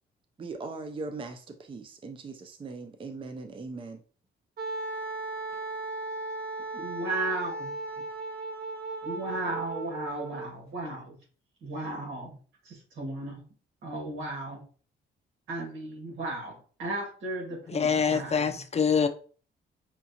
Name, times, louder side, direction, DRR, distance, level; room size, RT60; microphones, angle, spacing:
voice 1, 0.4-4.0, right 3 dB, 25° right, 0.5 m, -39 dB
Wind instrument woodwind instrument, 4.6-10.5, right 3 dB, 50° right, 0.8 m, -36 dB
voice 2, 6.7-7.7 9.0-11.1 11.6-12.3 13.0-13.4 13.8-14.6 15.5-18.6, right 2 dB, 75° right, 1.7 m, -35 dB
voice 3, 17.7-19.1, left 6 dB, 35° left, 0.5 m, -25 dB
5.7 x 2.4 x 2.8 m
cardioid pair, 90°, 20 cm